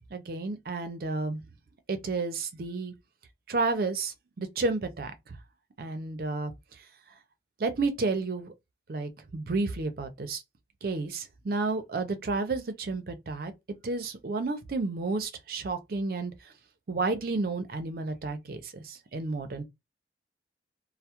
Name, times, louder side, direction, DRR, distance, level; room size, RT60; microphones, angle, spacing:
voice 1, 0.1-1.4 1.9-2.9 3.5-5.4 5.8-6.5 7.6-8.5 8.9-10.4 10.8-13.5 13.8-16.5 16.9-19.6, right 3 dB, 55° right, 0.5 m, -31 dB
2.2 x 2.0 x 2.8 m
head